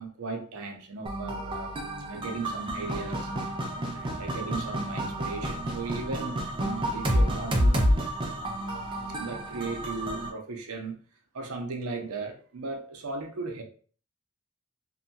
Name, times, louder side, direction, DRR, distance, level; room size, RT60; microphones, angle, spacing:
voice 1, 0.0-1.7 2.1-3.3 3.9-8.0 8.4-11.0 11.3-13.6, right 3 dB, 75° right, 0.6 m, -37 dB
sound 1, 1.1-10.3, equal, 25° right, 0.4 m, -29 dB
2.7 x 2.2 x 2.7 m
head